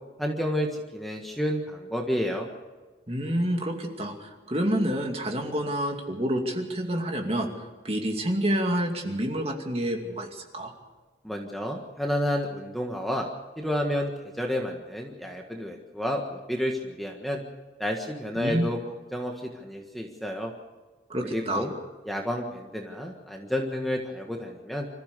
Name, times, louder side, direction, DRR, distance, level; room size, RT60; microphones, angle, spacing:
voice 1, 0.2-2.5 11.2-13.3 13.6-17.4 17.8-18.8 19.1-20.5 21.3-21.7 22.1-24.9, equal, ahead, 1 dB, 1.6 m, -30 dB
voice 2, 3.1-7.5 7.8-10.7 18.3-18.7 21.1-21.7, equal, 30° right, 3 dB, 2.5 m, -28 dB
26.0 x 14.5 x 6.8 m, 1.3 s
head